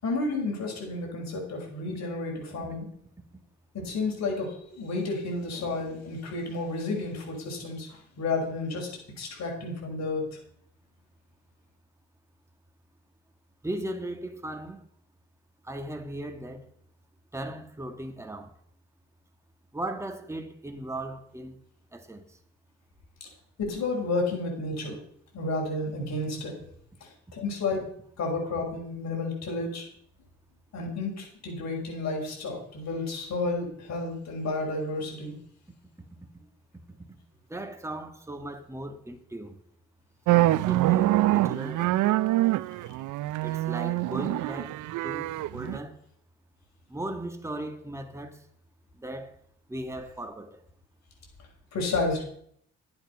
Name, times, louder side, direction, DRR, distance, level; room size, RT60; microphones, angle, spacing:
voice 1, 0.0-2.9 3.7-8.9 9.2-10.3 23.6-25.0 25.3-26.6 27.0-27.9 28.2-29.8 30.7-35.3 51.7-52.2, left 3 dB, 60° left, 6.1 m, -31 dB
voice 2, 13.6-14.8 15.6-16.7 17.3-18.5 19.7-21.6 21.9-22.4 37.5-39.6 40.7-42.0 43.4-46.0 46.9-48.4 48.9-49.4 49.7-50.6, right 1 dB, 10° right, 1.8 m, -37 dB
sound 1, 40.3-45.8, right 16 dB, 80° right, 0.5 m, -25 dB
12.0 x 9.7 x 5.7 m
cardioid pair, 90°, 30 cm